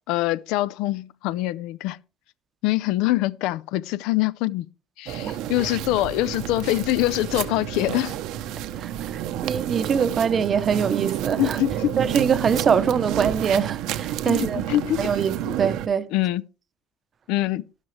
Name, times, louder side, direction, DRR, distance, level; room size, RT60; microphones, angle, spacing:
voice 1, 0.1-2.0 2.6-4.7 5.0-8.1 11.4-12.0 14.3-15.1 15.5-15.6 16.1-16.4 17.3-17.6, left 16 dB, 80° left, 0.5 m, -24 dB
sound 1, 5.1-15.9, right 12 dB, 70° right, 0.9 m, -30 dB
voice 2, 8.8-11.6 12.0-14.6 15.0-16.1, right 7 dB, 30° right, 0.8 m, -23 dB
12.5 x 12.0 x 3.3 m
cardioid pair, 160°, 0 cm